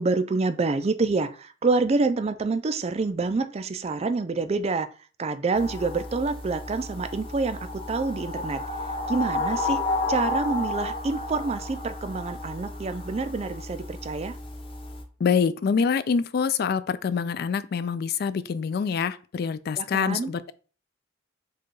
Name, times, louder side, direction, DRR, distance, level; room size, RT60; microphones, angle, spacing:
voice 1, 0.0-4.9 5.2-8.6 9.1-14.4 19.8-20.3, right 3 dB, 35° right, 0.4 m, -27 dB
sound 1, 5.5-15.0, left 2 dB, 30° left, 0.7 m, -32 dB
voice 2, 15.2-20.5, left 6 dB, 55° left, 0.3 m, -25 dB
4.8 x 2.3 x 4.6 m
head